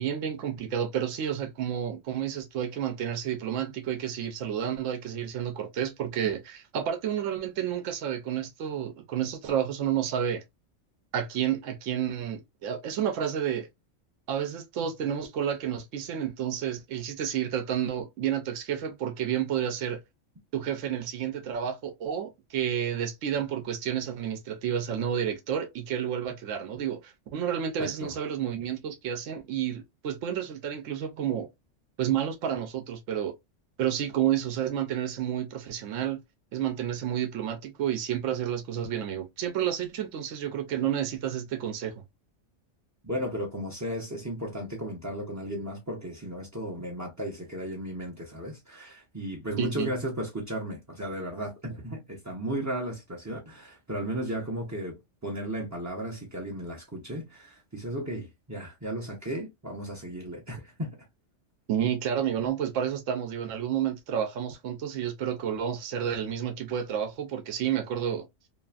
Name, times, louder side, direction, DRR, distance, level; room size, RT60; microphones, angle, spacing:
voice 1, 0.0-10.4 11.1-13.7 14.3-20.0 20.5-31.5 32.0-33.3 33.8-36.2 36.5-42.0 49.6-49.9 61.7-68.3, right 9 dB, 85° right, 1.0 m, -30 dB
voice 2, 27.8-28.2 43.0-61.0, right 1 dB, 25° right, 0.3 m, -35 dB
2.9 x 2.4 x 2.3 m
omnidirectional pair, 1.3 m